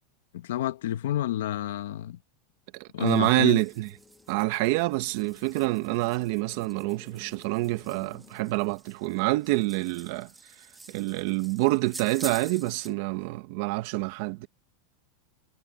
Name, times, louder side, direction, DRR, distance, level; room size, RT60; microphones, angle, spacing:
voice 1, 0.3-2.2 2.9-3.6, left 12 dB, 80° left, 1.6 m, -29 dB
voice 2, 2.7-3.9 4.3-10.3 10.9-14.5, right 21 dB, 55° right, 1.9 m, -27 dB
sound 1, 3.0-12.9, right 3 dB, 10° right, 1.8 m, -48 dB
sound 2, 3.2-8.6, left 5 dB, 15° left, 3.4 m, -55 dB
supercardioid pair, 150°, 0 cm